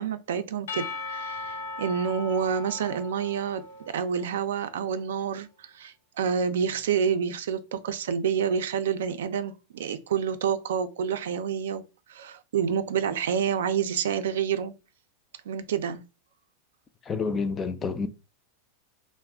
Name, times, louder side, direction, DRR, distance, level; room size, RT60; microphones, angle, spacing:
voice 1, 0.0-14.8 15.5-16.0, right 7 dB, 90° right, 0.4 m, -28 dB
Percussion / Church bell, 0.7-4.5, left 3 dB, 85° left, 0.6 m, -38 dB
voice 2, 17.1-18.1, left 5 dB, 20° left, 0.3 m, -28 dB
2.3 x 2.1 x 3.4 m
supercardioid pair, 150°, 0 cm